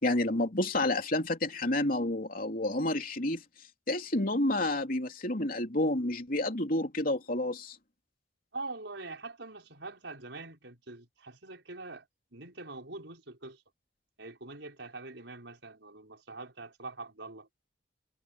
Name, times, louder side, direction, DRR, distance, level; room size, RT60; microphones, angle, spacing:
voice 1, 0.0-3.4 3.9-7.8, left 1 dB, 50° left, 3.2 m, -29 dB
voice 2, 8.5-12.0 12.3-13.6 14.2-17.5, right 3 dB, 75° right, 5.9 m, -44 dB
head